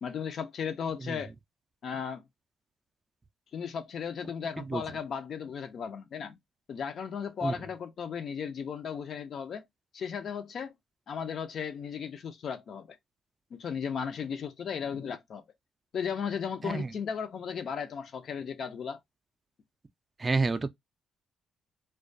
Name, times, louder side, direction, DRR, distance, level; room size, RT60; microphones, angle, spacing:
voice 1, 0.0-1.3 1.8-2.2 3.5-6.4 6.7-9.6 9.9-10.7 11.1-13.0 13.5-15.4 15.9-19.0, left 6 dB, 60° left, 0.4 m, -35 dB
voice 2, 20.2-20.7, right 3 dB, 30° right, 0.3 m, -28 dB
2.2 x 2.2 x 2.5 m
cardioid pair, 90°, 0 cm